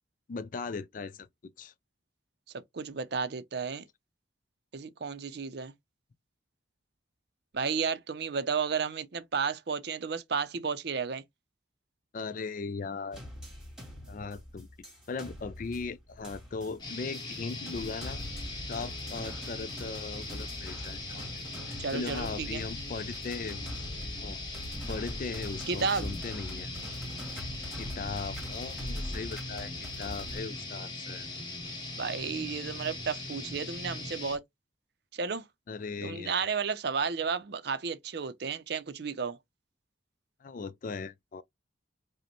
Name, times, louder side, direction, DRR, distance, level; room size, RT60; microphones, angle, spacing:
voice 1, 0.3-1.3 1.6-1.7 12.1-13.2 14.1-14.7 15.1-18.2 18.7-23.9 24.1-24.4 24.9-26.7 27.7-31.3 35.7-36.5 40.4-41.4, left 4 dB, 40° left, 0.3 m, -38 dB
voice 2, 2.7-3.8 4.7-5.7 7.5-11.2 21.8-22.7 25.7-26.1 32.0-34.4 35.1-35.4 36.0-39.4, right 5 dB, 55° right, 0.5 m, -32 dB
sound 1, 13.1-30.4, equal, 5° right, 1.8 m, -42 dB
sound 2, 16.8-34.4, left 2 dB, 25° left, 1.4 m, -40 dB
5.0 x 2.1 x 3.0 m
head